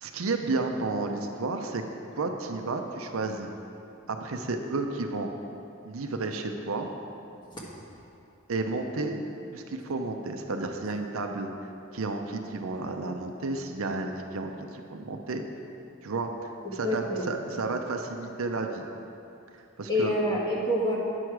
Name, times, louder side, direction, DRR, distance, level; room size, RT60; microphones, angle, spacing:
voice 1, 0.0-1.8 2.2-3.5 4.1-5.3 5.8-6.9 8.5-9.3 9.5-11.5 11.9-15.4 16.0-18.8 19.8-20.1, right 3 dB, 70° right, 4 dB, 0.6 m, -32 dB
voice 2, 16.8-17.3 19.9-21.0, equal, 20° left, -4 dB, 1.5 m, -27 dB
9.8 x 6.3 x 4.7 m, 2.8 s
head